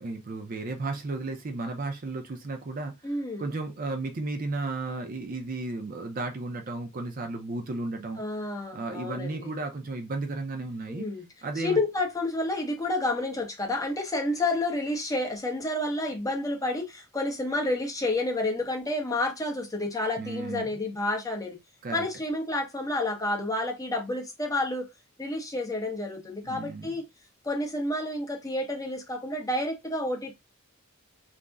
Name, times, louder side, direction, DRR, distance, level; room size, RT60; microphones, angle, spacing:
voice 1, 0.0-8.2 8.7-11.1 11.4-11.8 20.2-20.7 21.8-22.0 26.4-26.9, right 3 dB, 40° right, 0.5 m, -34 dB
voice 2, 3.0-3.5 8.2-9.5 10.9-11.3 11.6-21.6 21.9-24.9 25.2-27.0 27.4-30.3, left 2 dB, 15° left, 0.7 m, -30 dB
2.5 x 2.0 x 3.4 m
head